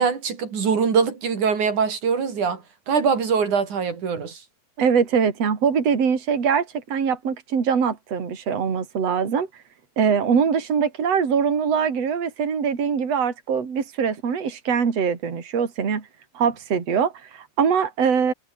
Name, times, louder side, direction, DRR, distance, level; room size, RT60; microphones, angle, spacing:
voice 1, 0.0-4.4, right 6 dB, 80° right, 5.1 m, -23 dB
voice 2, 4.8-9.5 10.0-16.1 16.3-18.3, right 6 dB, 55° right, 4.3 m, -22 dB
omnidirectional pair, 3.4 m